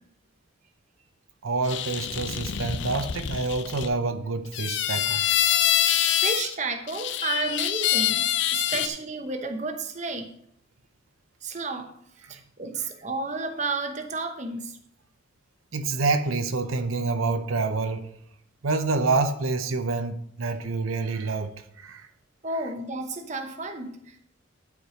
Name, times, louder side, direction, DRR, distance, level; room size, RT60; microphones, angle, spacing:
voice 1, 1.4-5.4 8.7-8.8 12.2-12.4 15.7-18.1 18.6-22.1, right 3 dB, 90° right, 0.8 m, -27 dB
sound 1, 1.6-3.9 4.5-6.5 6.9-8.9, left 11 dB, 60° left, 0.5 m, -25 dB
voice 2, 5.8-10.3 11.4-11.9 12.3-14.7 22.4-24.2, right 3 dB, 35° right, 0.9 m, -32 dB
11.0 x 4.8 x 5.0 m
head